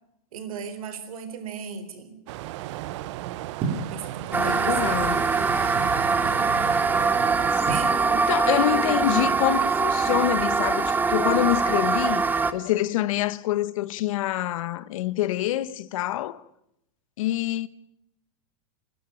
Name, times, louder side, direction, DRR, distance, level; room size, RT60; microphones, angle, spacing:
voice 1, 0.3-2.2 3.9-5.2 6.0-6.6 7.7-8.7 8.9-9.1, right 6 dB, 80° right, 4.1 m, -37 dB
sound 1, 2.3-7.5, right 15 dB, 55° right, 1.0 m, -35 dB
sound 2, 3.6-3.9 4.8-6.0 7.7-8.0, right 5 dB, 35° right, 4.4 m, -31 dB
voice 2, 4.3-5.2 8.3-12.3 12.5-16.4 17.2-17.7, left 13 dB, 70° left, 1.1 m, -26 dB
sound 3, 4.3-12.5, right 4 dB, 10° right, 0.9 m, -23 dB
26.5 x 12.5 x 9.0 m
supercardioid pair, 145°, 18 cm